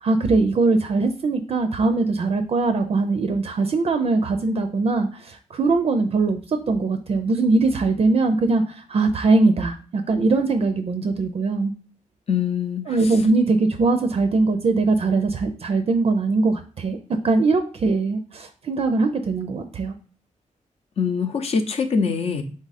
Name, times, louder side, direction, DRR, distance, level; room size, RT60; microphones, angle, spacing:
voice 1, 0.0-11.7 12.9-17.0 17.2-19.9, right 3 dB, 50° right, 7 dB, 0.4 m, -21 dB
voice 2, 12.3-13.1 21.0-22.4, left 6 dB, 55° left, 7 dB, 0.6 m, -24 dB
3.7 x 3.5 x 4.1 m, 0.39 s
wide cardioid pair, 140°, 13 cm